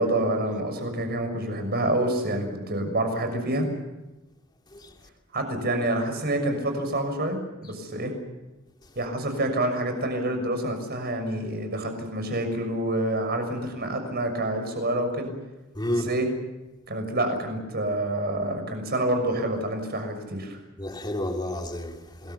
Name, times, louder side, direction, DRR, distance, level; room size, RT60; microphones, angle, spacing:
voice 1, 0.0-3.7 5.3-8.1 8.9-15.3 16.0-16.3 16.9-20.6, right 1 dB, 50° right, 6.5 m, -27 dB
voice 2, 15.7-16.1 20.8-22.3, left 1 dB, 20° left, 2.8 m, -31 dB
28.0 x 21.5 x 7.1 m
head